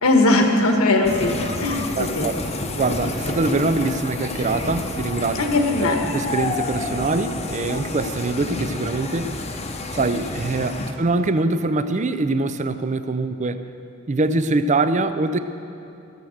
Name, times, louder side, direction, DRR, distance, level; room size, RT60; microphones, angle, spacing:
voice 1, 0.0-2.3 5.3-6.0, left 2 dB, 70° left, 4 dB, 1.4 m, -19 dB
sound 1, 1.0-10.9, left 2 dB, 30° left, 0.8 m, -29 dB
voice 2, 2.0-2.3 2.8-5.5 5.8-9.4 9.9-13.7 14.1-15.4, right 3 dB, 35° right, 11 dB, 0.5 m, -23 dB
16.0 x 8.0 x 6.5 m, 2.7 s
head